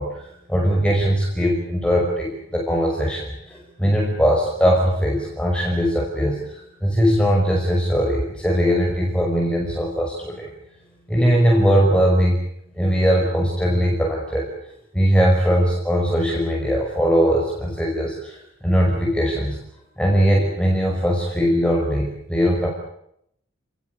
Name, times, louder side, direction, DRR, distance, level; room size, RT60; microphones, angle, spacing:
voice 1, 0.0-10.5 11.1-12.4 12.8-14.5 14.9-19.6 20.0-22.7, equal, 5° left, -1 dB, 5.6 m, -20 dB
29.5 x 20.0 x 8.2 m, 0.75 s
head